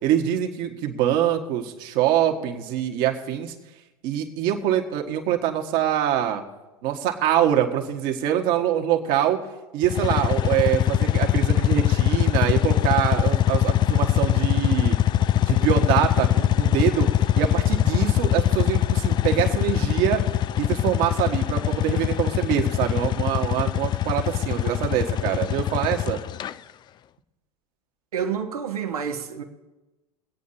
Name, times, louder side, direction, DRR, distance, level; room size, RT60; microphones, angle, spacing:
voice 1, 0.0-3.5 4.0-6.4 6.8-9.4 9.7-15.0 15.5-17.1 17.4-20.2 20.6-26.2, right 10 dB, 50° right, 1.7 m, -24 dB
sound 1, 9.8-26.5, left 12 dB, 25° left, 0.3 m, -22 dB
voice 2, 28.1-29.4, right 7 dB, 80° right, 1.5 m, -28 dB
24.0 x 8.6 x 2.8 m
hypercardioid pair, 90°, 19 cm